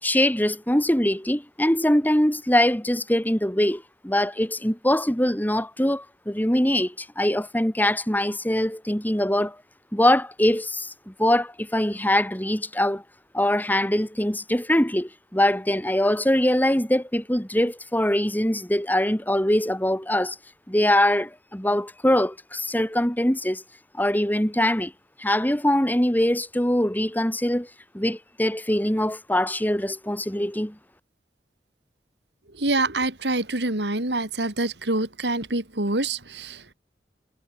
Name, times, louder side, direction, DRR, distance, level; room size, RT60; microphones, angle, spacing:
voice 1, 0.0-9.6 9.9-13.0 13.3-20.3 20.7-23.6 23.9-24.9 25.2-27.7 27.9-30.8, left 1 dB, 10° left, 3.4 m, -23 dB
voice 2, 32.6-36.7, right 2 dB, 75° right, 3.9 m, -26 dB
head